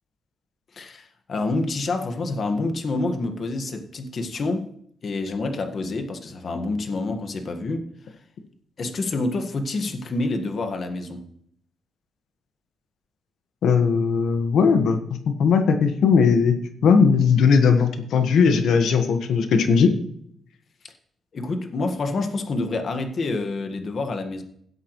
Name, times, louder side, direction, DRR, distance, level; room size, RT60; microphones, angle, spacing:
voice 1, 0.7-4.7 5.0-7.8 8.8-11.3 21.3-24.4, left 2 dB, 50° left, 6 dB, 1.6 m, -27 dB
voice 2, 13.6-15.0 15.4-16.6 16.8-19.9, left 5 dB, 85° left, 7 dB, 1.5 m, -18 dB
16.5 x 8.2 x 3.2 m, 0.66 s
cardioid pair, 105°, 0 cm